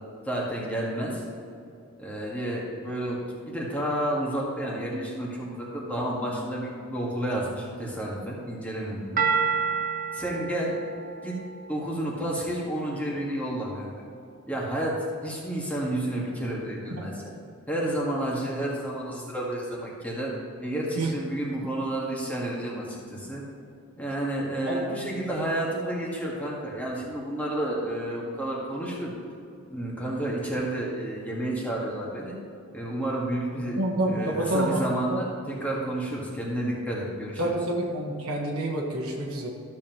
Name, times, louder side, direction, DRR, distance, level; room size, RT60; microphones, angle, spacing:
voice 1, 0.3-1.2 2.0-3.2 3.5-9.3 10.1-10.7 11.2-11.4 11.7-14.1 14.5-17.3 17.7-20.3 20.6-23.4 24.0-29.1 29.7-32.4 32.7-33.8 34.0-37.5, right 1 dB, 5° left, -4 dB, 1.7 m, -30 dB
sound 1, 9.2-12.4, right 6 dB, 40° right, 0.7 m, -29 dB
voice 2, 33.8-34.8 35.1-35.2 37.4-39.5, right 1 dB, 85° right, -2 dB, 1.4 m, -28 dB
13.0 x 7.3 x 3.0 m, 2.5 s
head